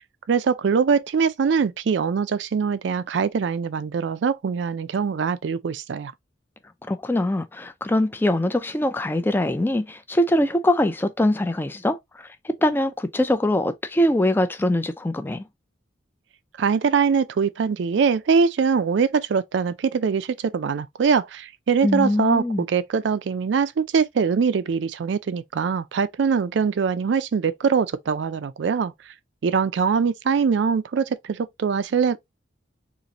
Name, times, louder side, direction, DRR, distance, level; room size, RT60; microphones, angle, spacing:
voice 1, 0.3-6.1 16.6-28.9 29.4-32.2, right 6 dB, 70° right, 0.4 m, -22 dB
voice 2, 6.9-15.5 21.8-22.6, left 1 dB, 10° left, 0.3 m, -23 dB
3.9 x 2.5 x 2.9 m
head